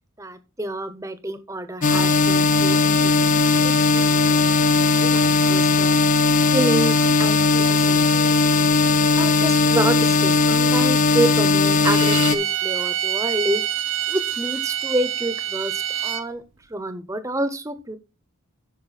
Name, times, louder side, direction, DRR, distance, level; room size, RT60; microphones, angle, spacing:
voice 1, 0.2-3.4 3.6-6.0 6.5-8.3 9.2-13.6 14.1-16.4 16.7-18.0, right 1 dB, 15° right, 12 dB, 0.7 m, -28 dB
sound 1, 1.8-12.4, left 4 dB, 35° left, 0.4 m, -18 dB
Bowed string instrument, 11.8-16.3, right 11 dB, 60° right, 0.7 m, -26 dB
8.9 x 5.4 x 4.1 m, 0.29 s
head